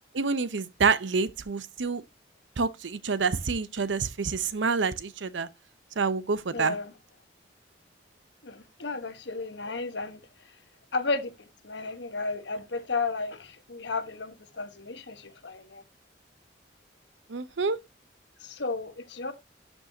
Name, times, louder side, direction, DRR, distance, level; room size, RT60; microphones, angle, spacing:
voice 1, 0.1-2.0 2.6-5.5 6.0-6.8 17.3-17.8, right 5 dB, 90° right, 0.7 m, -27 dB
voice 2, 6.5-6.9 8.4-10.2 10.9-11.3 11.6-15.8 18.4-19.3, left 3 dB, 75° left, 1.2 m, -33 dB
12.5 x 5.4 x 2.7 m
head